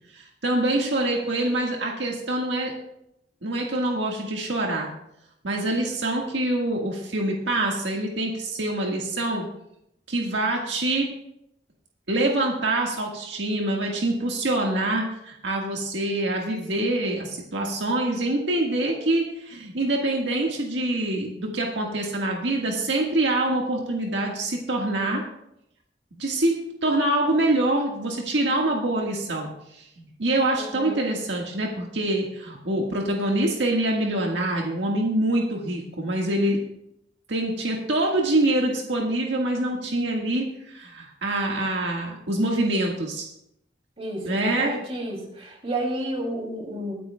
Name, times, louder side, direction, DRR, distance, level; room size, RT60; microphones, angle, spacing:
voice 1, 0.1-2.7 3.4-4.9 5.4-9.5 10.1-11.1 12.1-25.2 26.2-36.6 37.3-43.2 44.2-44.8, right 1 dB, 80° right, 0 dB, 1.7 m, -25 dB
voice 2, 30.5-31.0 44.0-46.9, right 1 dB, 35° right, -1 dB, 3.0 m, -31 dB
23.0 x 9.5 x 2.3 m, 0.80 s
head